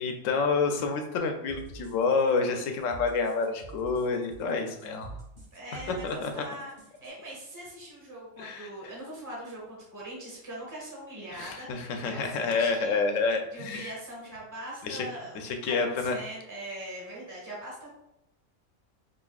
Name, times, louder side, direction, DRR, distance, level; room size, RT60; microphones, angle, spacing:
voice 1, 0.0-5.2 6.0-6.4 8.4-8.7 11.3-13.9 14.8-15.1 15.3-16.2, left 4 dB, 75° left, 4 dB, 1.0 m, -28 dB
sound 1, 1.5-7.1, right 2 dB, 40° right, 1.3 m, -47 dB
voice 2, 5.5-6.7 7.0-13.0 13.5-17.9, right 1 dB, 15° right, -5 dB, 1.1 m, -42 dB
5.1 x 2.5 x 2.3 m, 0.85 s
omnidirectional pair, 1.4 m